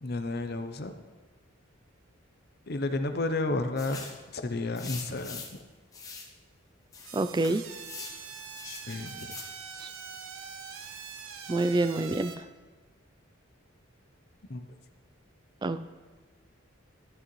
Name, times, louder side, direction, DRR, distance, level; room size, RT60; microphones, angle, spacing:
voice 1, 0.0-0.9 2.7-4.0 4.3-5.4 8.6-9.1 14.5-14.6, left 2 dB, 50° left, 8 dB, 0.7 m, -31 dB
sound 1, 3.8-4.2 4.8-5.6 5.9-6.3 6.9-8.2 8.6-9.5, left 4 dB, 15° left, 1.0 m, -43 dB
voice 2, 7.1-7.6 9.8-9.9 11.5-12.3 15.6-15.9, right 2 dB, 20° right, 12 dB, 0.3 m, -27 dB
sound 2, 7.1-12.4, right 6 dB, 80° right, 0.8 m, -43 dB
13.0 x 8.7 x 3.2 m, 1.3 s
head